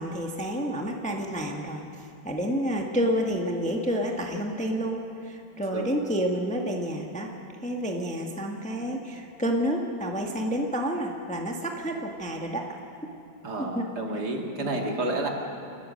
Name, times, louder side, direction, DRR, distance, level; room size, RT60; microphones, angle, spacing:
voice 1, 0.0-1.8 2.2-7.3 7.6-12.6 13.7-13.9 14.6-14.8, equal, 5° left, 1 dB, 1.2 m, -29 dB
voice 2, 13.4-15.3, right 2 dB, 60° right, 1 dB, 2.6 m, -30 dB
28.5 x 14.0 x 6.5 m, 2.6 s
omnidirectional pair, 2.0 m